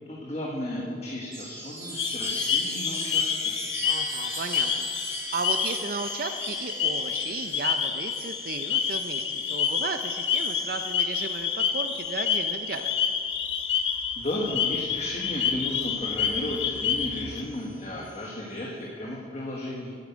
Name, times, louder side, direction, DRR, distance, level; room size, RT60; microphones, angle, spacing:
voice 1, 0.1-3.3 13.7-19.9, left 1 dB, 35° left, -3 dB, 1.4 m, -34 dB
Chime, 1.3-15.3 15.8-18.6, right 2 dB, 15° right, 3.1 m, -41 dB
sound 1, 2.0-17.4, left 7 dB, 90° left, 0.9 m, -28 dB
voice 2, 3.8-12.9, right 4 dB, 50° right, 7 dB, 0.5 m, -35 dB
9.6 x 8.8 x 8.4 m, 2.2 s
head